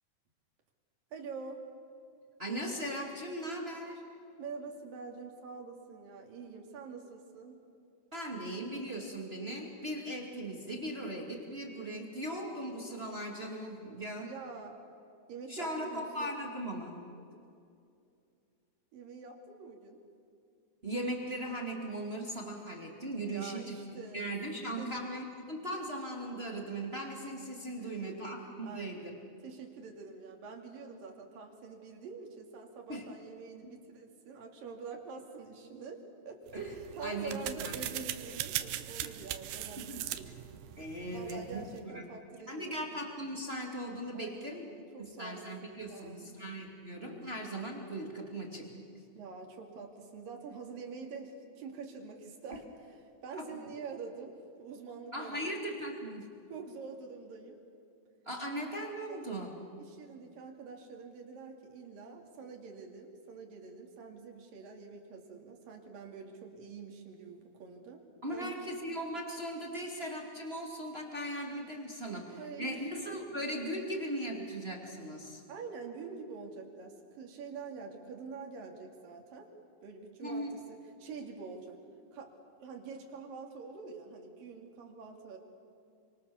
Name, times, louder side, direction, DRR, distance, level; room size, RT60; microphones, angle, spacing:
voice 1, 1.1-1.6 4.4-7.6 14.2-14.8 15.3-16.3 18.9-20.0 23.0-24.2 24.8-25.0 27.8-28.2 28.6-29.0 29.4-36.4 36.7-40.5 41.1-42.9 44.1-46.4 49.1-55.5 56.5-57.6 59.1-59.3 59.8-68.0 68.3-68.6 72.3-72.9 75.5-79.5 79.8-81.8 82.1-82.3 82.6-85.4, right 4 dB, 55° right, 2 dB, 4.1 m, -46 dB
voice 2, 2.4-4.0 8.1-14.3 15.5-17.0 20.8-23.8 24.1-29.1 32.9-33.0 33.6-33.7 36.5-37.7 39.0-39.1 39.8-40.3 40.7-41.6 41.8-42.0 42.4-44.7 45.0-48.7 53.3-53.4 55.1-56.3 58.2-59.6 68.2-75.4 80.2-80.6, right 1 dB, 25° right, 1 dB, 1.5 m, -38 dB
sound 1, 36.5-41.8, right 13 dB, 80° right, 3.1 m, -40 dB
29.0 x 25.0 x 7.1 m, 2.5 s
omnidirectional pair, 5.2 m